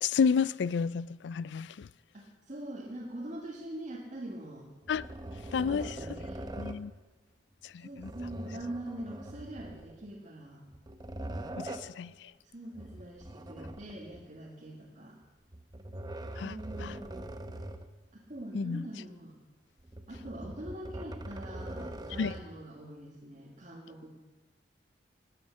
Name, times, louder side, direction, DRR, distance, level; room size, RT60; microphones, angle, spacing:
voice 1, 0.0-1.9 4.9-5.1 5.5-6.2 6.6-6.9 7.6-8.1 11.6-12.3 16.4-17.0 18.5-18.9 22.2-22.3, left 6 dB, 70° left, 0.3 m, -31 dB
voice 2, 2.1-4.7 5.6-6.5 7.8-10.6 12.4-15.2 16.4-17.3 18.1-19.3 20.1-24.1, right 1 dB, 45° right, 2.0 m, -43 dB
sound 1, 4.8-6.9 7.9-10.1 10.7-12.0 12.7-14.2 15.5-18.0 18.4-18.5 19.8-22.6, right 1 dB, 25° right, 0.8 m, -42 dB
17.0 x 9.6 x 6.5 m
head